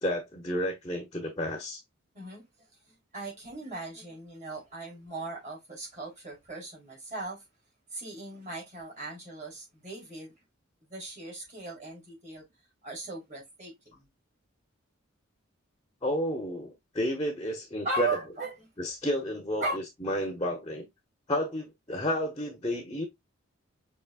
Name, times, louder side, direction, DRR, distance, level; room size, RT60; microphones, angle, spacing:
voice 1, 0.0-1.8 16.0-18.1 18.8-20.8 21.3-23.0, left 1 dB, 20° left, 0.8 m, -31 dB
voice 2, 2.1-2.5 2.9-7.4 7.9-10.3 10.9-12.5 12.8-14.0 17.8-18.7 19.6-19.8, right 3 dB, 35° right, 2.9 m, -37 dB
6.0 x 3.1 x 2.4 m
head